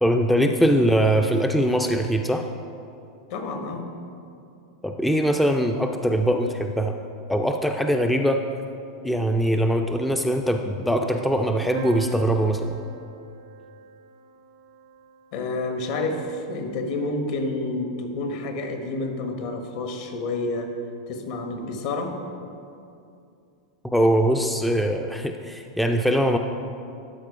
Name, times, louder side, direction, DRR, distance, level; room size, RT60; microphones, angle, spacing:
voice 1, 0.0-2.5 4.8-6.9 7.3-8.4 9.0-12.7 23.9-26.4, equal, ahead, 4 dB, 0.3 m, -22 dB
voice 2, 3.3-3.9 15.3-20.8 21.1-22.2, left 2 dB, 55° left, 5 dB, 1.2 m, -29 dB
sound 1, 11.8-15.5, right 3 dB, 65° right, 0.5 m, -40 dB
12.0 x 4.5 x 4.9 m, 2.5 s
supercardioid pair, 140°, 3 cm